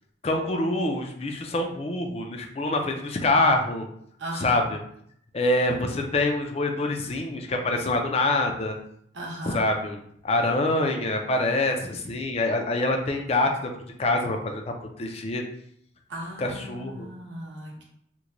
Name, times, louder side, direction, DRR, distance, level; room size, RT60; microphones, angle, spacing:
voice 1, 0.2-3.9 4.3-4.8 5.3-8.7 9.4-10.0 10.2-13.7 14.0-15.4 16.4-17.1, left 2 dB, 30° left, 3 dB, 0.4 m, -25 dB
voice 2, 4.2-4.6 9.1-9.6 16.1-17.8, right 1 dB, 65° right, -1 dB, 0.8 m, -37 dB
3.0 x 2.1 x 3.7 m, 0.69 s
head